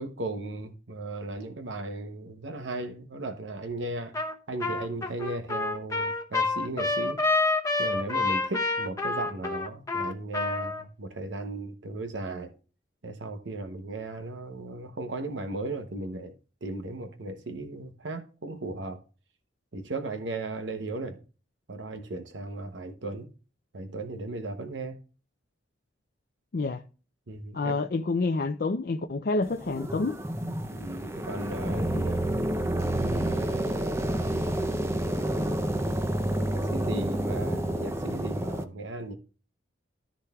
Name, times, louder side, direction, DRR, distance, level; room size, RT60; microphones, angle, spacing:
voice 1, 0.0-4.1 4.5-7.2 7.8-12.5 13.0-16.3 16.6-19.0 19.7-21.2 21.7-23.3 23.7-25.0 27.3-27.8 30.7-32.3 32.9-34.1 36.3-39.2, right 2 dB, 80° right, 0.9 m, -36 dB
Trumpet, 4.1-4.3 4.6-10.8, left 3 dB, 15° left, 0.8 m, -28 dB
voice 2, 27.5-30.2, left 3 dB, 55° left, 0.5 m, -28 dB
sound 1, 29.4-38.6, right 1 dB, 15° right, 0.5 m, -29 dB
14.0 x 6.1 x 2.3 m
head